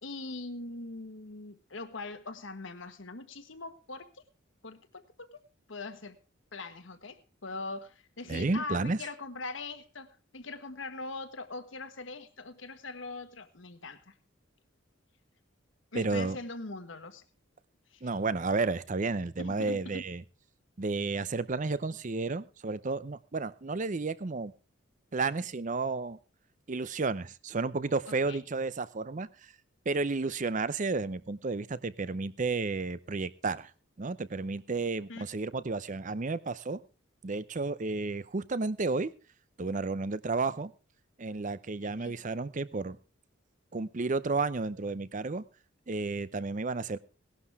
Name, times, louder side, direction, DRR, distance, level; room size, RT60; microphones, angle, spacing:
voice 1, 0.0-4.2 4.6-5.4 5.7-6.2 6.5-14.1 15.9-17.2 17.9-18.0 19.4-20.0 28.1-28.4 35.1-35.3 41.8-42.2, left 3 dB, 70° left, 9 dB, 1.5 m, -42 dB
voice 2, 8.3-9.0 15.9-16.4 18.0-20.2 20.8-24.5 25.1-26.2 26.7-29.3 29.9-33.7 34.0-36.8 37.2-39.1 39.6-40.7 41.2-43.0 43.7-45.4 45.9-47.0, right 3 dB, 40° right, 16 dB, 0.6 m, -32 dB
18.0 x 11.5 x 3.6 m, 0.33 s
head